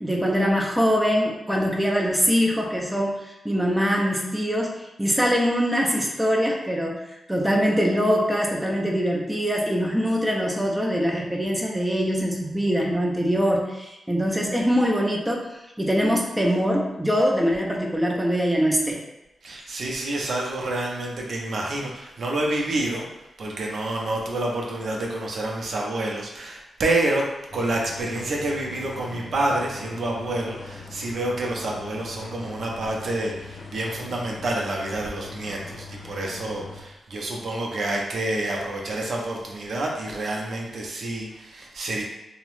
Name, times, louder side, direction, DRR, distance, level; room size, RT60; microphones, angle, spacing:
voice 1, 0.0-7.0 7.3-19.0, equal, 5° right, -1 dB, 0.4 m, -23 dB
voice 2, 19.4-23.1 23.4-27.3 27.5-42.0, right 2 dB, 65° right, -1 dB, 0.5 m, -28 dB
sound 1, 27.5-36.8, left 4 dB, 60° left, 0.4 m, -41 dB
2.8 x 2.0 x 3.0 m, 0.94 s
cardioid pair, 95°, 0 cm